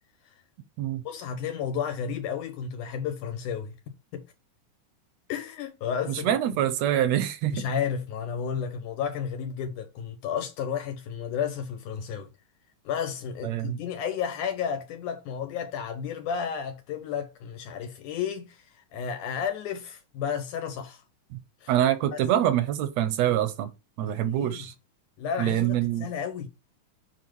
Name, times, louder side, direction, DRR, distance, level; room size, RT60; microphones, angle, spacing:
voice 1, 1.1-3.7 4.1-4.2 5.3-6.4 7.5-12.3 12.9-21.0 21.6-21.7 22.1-22.2 24.0-24.7 25.2-26.5, left 7 dB, 75° left, 2.4 m, -32 dB
voice 2, 6.1-7.6 13.4-13.8 21.3-21.4 21.7-23.7 24.0-24.7 25.4-26.1, right 11 dB, 75° right, 1.6 m, -25 dB
7.0 x 4.3 x 4.7 m
omnidirectional pair, 3.7 m